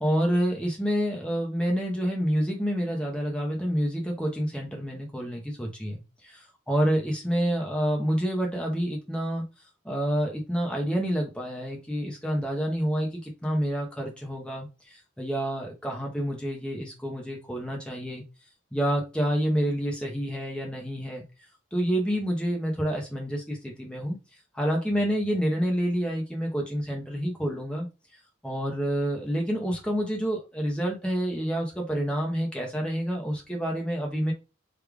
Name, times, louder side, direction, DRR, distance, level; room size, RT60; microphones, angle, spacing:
voice 1, 0.0-9.4 9.8-18.2 18.7-21.2 21.7-24.2 24.5-27.9 28.4-34.3, equal, 5° left, 0 dB, 0.8 m, -28 dB
3.3 x 3.2 x 2.3 m, 0.28 s
head